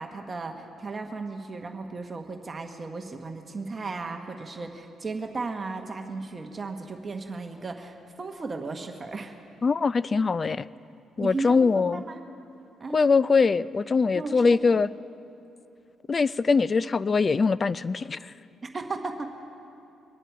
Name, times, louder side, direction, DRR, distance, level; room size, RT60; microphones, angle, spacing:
voice 1, 0.0-9.3 11.2-12.2 12.8-13.0 14.1-14.6 18.7-19.3, right 3 dB, 35° right, 5 dB, 1.1 m, -35 dB
voice 2, 9.6-10.7 11.2-12.0 12.9-14.9 16.1-18.3, left 4 dB, 35° left, 18 dB, 0.3 m, -22 dB
23.5 x 9.9 x 4.6 m, 2.7 s
cardioid pair, 90°, 0 cm